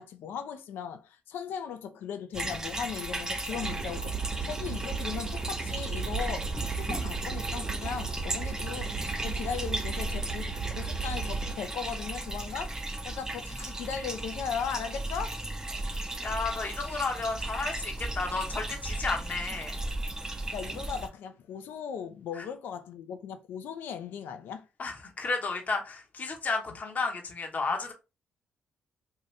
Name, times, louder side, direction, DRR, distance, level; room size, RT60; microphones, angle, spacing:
voice 1, 0.0-15.4 20.5-24.6, left 7 dB, 75° left, 0.5 m, -38 dB
sound 1, 2.3-21.1, right 2 dB, 20° right, 0.7 m, -36 dB
sound 2, 3.5-11.6, right 5 dB, 55° right, 0.9 m, -36 dB
voice 2, 16.2-19.8 24.8-27.9, left 4 dB, 50° left, 0.9 m, -32 dB
2.7 x 2.6 x 3.1 m
supercardioid pair, 55°, 4 cm